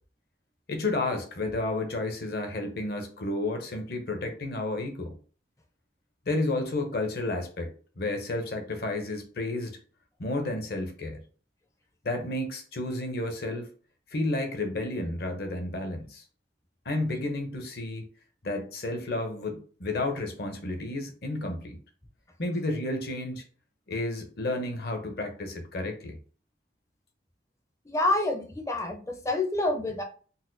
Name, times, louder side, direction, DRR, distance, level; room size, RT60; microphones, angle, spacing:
voice 1, 0.7-5.1 6.3-7.7 8.0-9.8 10.2-11.2 12.0-13.7 14.1-16.2 16.9-18.1 18.4-21.8 22.4-23.4 23.9-26.1, left 2 dB, 60° left, 4 dB, 0.7 m, -31 dB
voice 2, 27.9-30.0, left 2 dB, 15° left, 3 dB, 0.4 m, -27 dB
4.1 x 2.2 x 2.6 m, 0.40 s
head